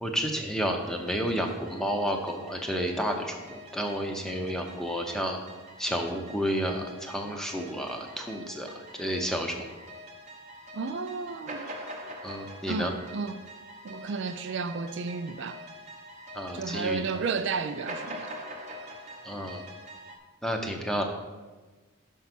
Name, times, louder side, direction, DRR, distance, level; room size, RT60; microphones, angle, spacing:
voice 1, 0.0-5.4 5.8-9.7 12.2-12.9 16.3-17.0 19.2-19.6 20.4-21.0, equal, ahead, 0.7 m, -31 dB
sound 1, 0.8-20.2, equal, 35° right, 0.9 m, -45 dB
voice 2, 10.7-11.7 12.7-13.5 13.8-15.6 16.5-18.3, right 5 dB, 55° right, 0.3 m, -32 dB
5.8 x 5.5 x 6.0 m
head